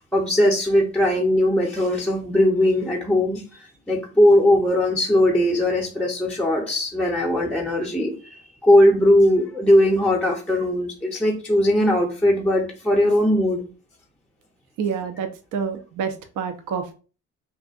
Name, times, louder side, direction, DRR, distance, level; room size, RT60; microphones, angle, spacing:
voice 1, 0.1-13.6, left 1 dB, 5° left, 0 dB, 0.6 m, -19 dB
voice 2, 14.8-16.9, right 6 dB, 50° right, 7 dB, 0.5 m, -28 dB
2.5 x 2.4 x 2.4 m, 0.36 s
hypercardioid pair, 50°, 38 cm